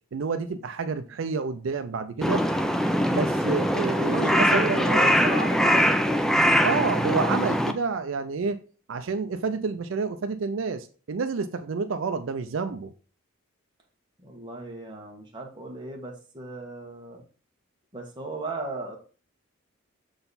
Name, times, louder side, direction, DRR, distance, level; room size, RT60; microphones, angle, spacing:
voice 1, 0.1-2.4 3.1-4.8 6.6-8.6 8.9-12.9, right 4 dB, 70° right, 9 dB, 0.4 m, -29 dB
Crow, 2.2-7.7, equal, ahead, 0.4 m, -22 dB
voice 2, 3.8-6.4 14.2-17.2 17.9-19.0, right 2 dB, 20° right, 1 dB, 1.3 m, -34 dB
6.7 x 3.9 x 4.0 m, 0.38 s
head